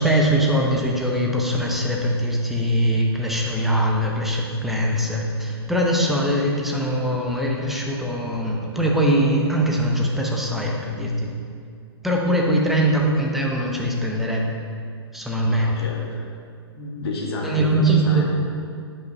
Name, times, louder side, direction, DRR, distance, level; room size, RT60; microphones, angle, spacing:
voice 1, 0.0-11.3 12.0-14.5 15.1-15.8 17.4-18.2, right 1 dB, ahead, -2 dB, 0.8 m, -22 dB
voice 2, 15.6-16.2 16.7-18.2, left 2 dB, 65° left, -1 dB, 1.6 m, -30 dB
10.0 x 5.5 x 2.8 m, 2.3 s
hypercardioid pair, 135°, 14 cm